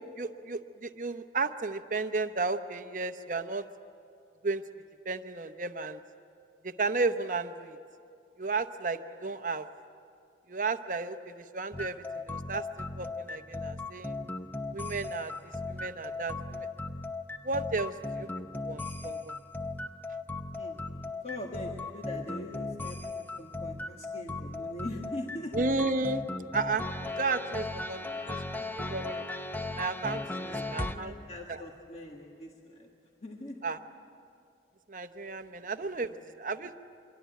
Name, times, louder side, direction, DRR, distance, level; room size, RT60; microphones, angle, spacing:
voice 1, 0.2-3.7 4.4-4.6 5.0-6.0 6.6-7.8 8.4-9.7 10.5-14.2 14.7-16.7 17.4-19.3 25.5-26.2 26.5-26.8 27.2-28.4 28.8-29.3 29.8-30.2 30.7-31.1 31.5-31.6 33.6-33.8 34.9-36.7, right 3 dB, 45° right, 9 dB, 0.8 m, -33 dB
sound 1, 11.7-31.0, left 2 dB, 10° left, 0.7 m, -37 dB
voice 2, 21.2-25.5 27.9-28.7 30.3-32.9 33.2-33.6 35.6-35.7 36.1-36.2, left 1 dB, 35° left, 0 dB, 1.9 m, -42 dB
26.0 x 23.0 x 9.3 m, 2.5 s
head